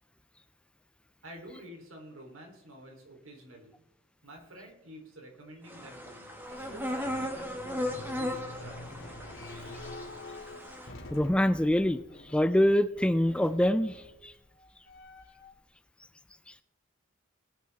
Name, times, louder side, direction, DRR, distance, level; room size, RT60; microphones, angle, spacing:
voice 1, 1.2-3.7 4.2-7.6 8.0-8.9, equal, 85° right, 1 dB, 3.4 m, -49 dB
sound 1, 5.7-10.9, left 1 dB, 10° right, 1.8 m, -37 dB
sound 2, 6.5-15.6, left 2 dB, 70° left, 2.6 m, -47 dB
voice 2, 11.1-12.0 12.3-14.3, left 1 dB, 5° left, 13 dB, 0.4 m, -25 dB
19.5 x 9.4 x 3.5 m, 0.86 s
head